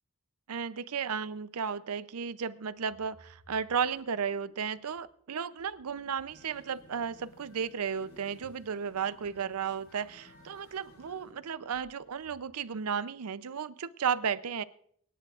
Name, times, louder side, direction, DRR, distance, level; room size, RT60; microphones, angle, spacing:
voice 1, 0.5-14.6, right 7 dB, 80° right, 0.5 m, -34 dB
sound 1, 2.6-5.1 5.6-7.6 7.9-12.7, equal, 30° left, 7.0 m, -63 dB
sound 2, 6.3-11.3, left 1 dB, 70° left, 3.4 m, -58 dB
26.0 x 10.0 x 2.4 m
head